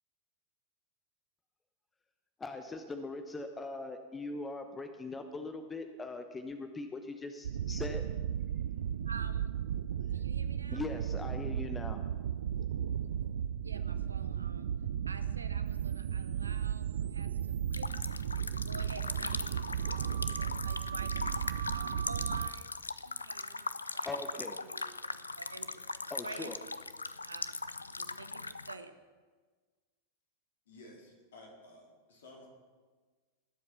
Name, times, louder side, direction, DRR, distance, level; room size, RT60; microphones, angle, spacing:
voice 1, 2.4-8.0 10.7-12.0 24.0-24.6 26.1-26.6, left 3 dB, 15° left, 7 dB, 0.9 m, -41 dB
sound 1, 7.4-22.5, right 9 dB, 60° right, 0.4 m, -35 dB
voice 2, 9.1-9.5 10.1-10.8 13.6-14.7 15.1-16.9 17.1-17.4 17.7-21.3 21.7-24.1 24.5-26.5 27.2-28.9, right 4 dB, 75° right, 10 dB, 1.0 m, -49 dB
sound 2, 17.7-28.7, left 3 dB, 80° left, 0.5 m, -40 dB
voice 3, 30.7-32.5, left 1 dB, 65° left, 0 dB, 3.8 m, -54 dB
20.0 x 7.7 x 5.8 m, 1.4 s
figure-of-eight pair, 90°, 0 cm